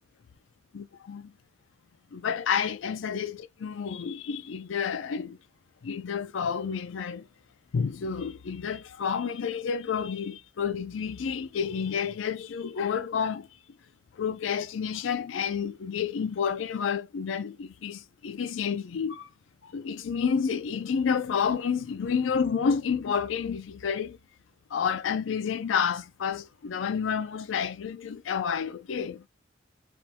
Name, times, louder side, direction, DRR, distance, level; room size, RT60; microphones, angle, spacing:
voice 1, 0.7-1.3 2.1-5.4 5.8-7.3 7.7-13.5 14.1-19.3 19.6-24.2 24.7-29.2, left 6 dB, 85° left, 0.4 m, -30 dB
3.4 x 2.5 x 2.7 m
head